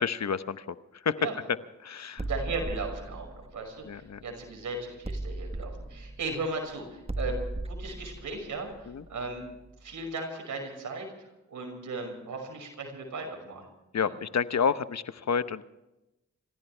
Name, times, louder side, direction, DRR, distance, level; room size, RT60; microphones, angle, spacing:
voice 1, 0.0-1.2 1.8-2.3 3.8-4.2 8.9-9.0 13.9-15.6, left 6 dB, 60° left, 13 dB, 0.9 m, -30 dB
sound 1, 2.2-4.5 5.0-9.7, right 2 dB, 20° right, 1.3 m, -37 dB
voice 2, 2.2-7.4 7.7-9.4 9.8-13.7 14.0-14.1, right 3 dB, 90° right, 2 dB, 5.8 m, -37 dB
28.0 x 15.5 x 3.4 m, 0.95 s
cardioid pair, 55°, 30 cm